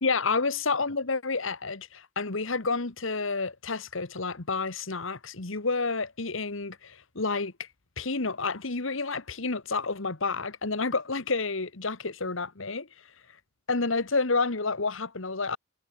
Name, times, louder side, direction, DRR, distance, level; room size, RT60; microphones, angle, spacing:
voice 1, 0.0-7.5 8.0-12.9 13.7-15.6, left 4 dB, 70° left, 1.6 m, -29 dB
head